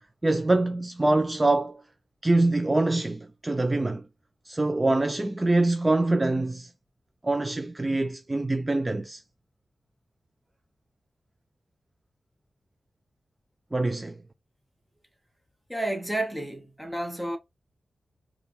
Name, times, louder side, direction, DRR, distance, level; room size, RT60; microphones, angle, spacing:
voice 1, 0.2-1.8 2.2-4.0 4.5-6.7 7.2-9.2 13.7-14.2, right 2 dB, 20° right, 0.3 m, -24 dB
voice 2, 15.7-17.4, right 1 dB, 5° right, 0.9 m, -31 dB
3.4 x 2.3 x 4.1 m
wide cardioid pair, 125°, 0 cm